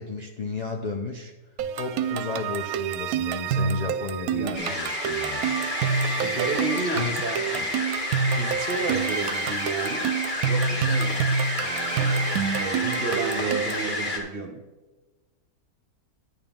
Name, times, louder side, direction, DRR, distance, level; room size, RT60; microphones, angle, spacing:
voice 1, 0.0-1.3 1.8-5.5 6.9-7.7, left 4 dB, 70° left, 2 dB, 0.4 m, -33 dB
sound 1, 1.6-13.9, right 6 dB, 75° right, 1.0 m, -28 dB
voice 2, 4.3-4.8 6.2-7.4 8.3-10.1 10.5-11.2 11.6-14.6, right 4 dB, 45° right, 5 dB, 0.9 m, -32 dB
sound 2, 4.5-14.2, left 2 dB, 40° left, 1.8 m, -30 dB
9.7 x 9.0 x 3.6 m, 1.3 s
omnidirectional pair, 1.6 m